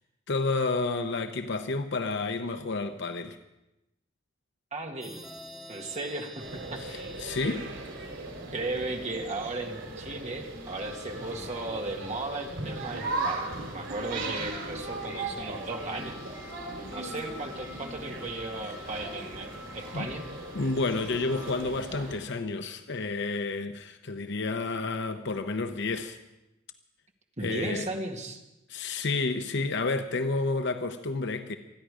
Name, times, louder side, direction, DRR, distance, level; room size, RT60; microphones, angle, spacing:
voice 1, 0.3-3.4 6.8-7.6 19.9-20.1 20.5-26.2 27.4-27.9 28.7-31.6, left 3 dB, 65° left, 7 dB, 0.8 m, -30 dB
voice 2, 4.7-5.3 5.7-6.4 6.7-7.6 8.5-16.2 16.9-20.2 27.4-28.4, right 2 dB, 35° right, 2 dB, 2.0 m, -36 dB
sound 1, 5.0-8.6, right 1 dB, ahead, 1.9 m, -48 dB
sound 2, 6.4-22.2, right 2 dB, 80° right, 4.6 m, -38 dB
sound 3, 10.6-21.5, left 2 dB, 15° right, 4.6 m, -49 dB
27.0 x 10.5 x 5.0 m, 0.94 s
head